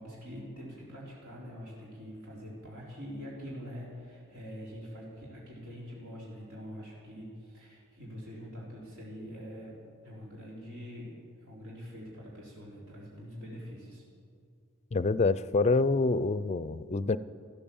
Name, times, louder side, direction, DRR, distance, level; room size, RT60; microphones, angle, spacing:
voice 1, 0.0-14.0, equal, 85° right, -5 dB, 4.0 m, -44 dB
voice 2, 14.9-17.2, left 3 dB, 30° left, 16 dB, 0.4 m, -26 dB
14.5 x 14.0 x 7.1 m, 2.2 s
head